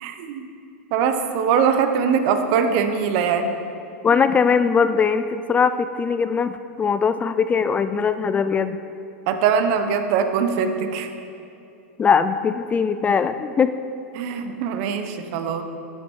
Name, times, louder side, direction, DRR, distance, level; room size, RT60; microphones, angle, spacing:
voice 1, 0.0-0.4 0.9-3.5 9.3-11.1 14.1-15.6, right 6 dB, 55° right, 7 dB, 1.1 m, -22 dB
voice 2, 4.0-8.8 12.0-13.7, left 6 dB, 20° left, 11 dB, 0.4 m, -20 dB
12.0 x 9.1 x 4.6 m, 2.7 s
hypercardioid pair, 115°, 8 cm